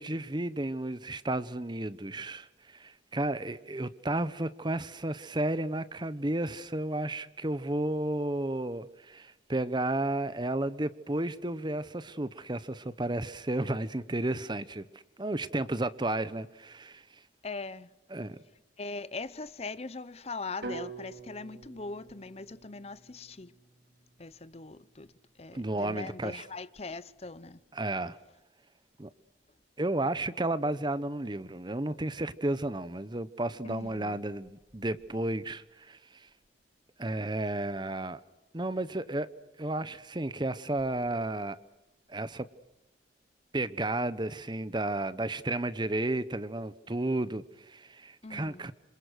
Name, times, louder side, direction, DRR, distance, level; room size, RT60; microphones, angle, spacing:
voice 1, 0.0-14.9 15.2-17.0 18.1-18.4 25.5-26.4 27.7-28.2 29.0-29.1 29.8-36.3 37.0-38.2 38.5-39.3 39.6-41.6 42.1-42.5 43.5-48.7, right 2 dB, 25° right, 0.9 m, -32 dB
voice 2, 17.4-17.9 18.8-23.5 24.2-25.1 25.4-27.6 33.6-34.2 48.2-48.6, left 3 dB, 35° left, 0.8 m, -41 dB
sound 1, 20.6-24.7, right 3 dB, 65° right, 3.6 m, -46 dB
27.5 x 27.0 x 6.3 m
head